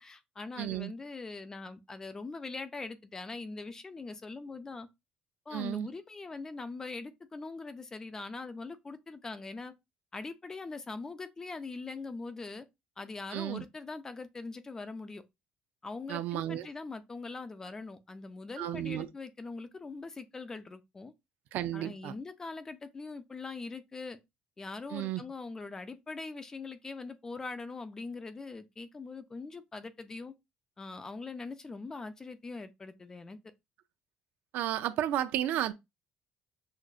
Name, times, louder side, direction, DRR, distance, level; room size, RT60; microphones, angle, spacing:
voice 1, 0.0-4.9 5.5-9.7 10.1-12.7 13.0-15.2 15.8-21.1 21.7-24.2 24.6-30.3 30.8-33.4, left 3 dB, 20° left, 0.4 m, -42 dB
voice 2, 0.6-0.9 5.5-5.9 13.3-13.6 16.1-16.7 18.6-19.1 21.5-22.1 24.9-25.2 34.5-35.7, right 12 dB, 75° right, 0.4 m, -33 dB
6.4 x 2.4 x 2.4 m
cardioid pair, 160°, 3 cm